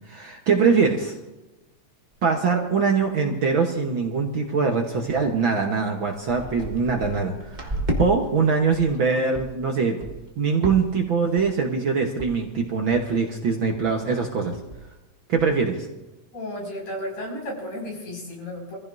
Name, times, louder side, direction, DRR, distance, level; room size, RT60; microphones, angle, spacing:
voice 1, 0.1-1.1 2.2-10.0 10.4-14.5 15.3-15.9, right 5 dB, 55° right, 2 dB, 1.5 m, -23 dB
sound 1, 2.1-2.2 2.7-2.8 3.0-3.5 3.8-4.1 4.7-4.8 5.4-5.5 5.8-8.1 8.5-9.0 9.3-9.6 10.0-10.3 10.6-11.0 11.4-11.7 12.2-12.3 12.6-12.7 12.9-13.3 13.7-13.9 14.2-14.3 14.5-14.9 15.4-15.5, right 1 dB, 35° right, 0.7 m, -32 dB
voice 2, 16.3-18.8, left 1 dB, 75° left, -2 dB, 7.0 m, -33 dB
26.0 x 15.5 x 2.6 m, 1.1 s
omnidirectional pair, 3.3 m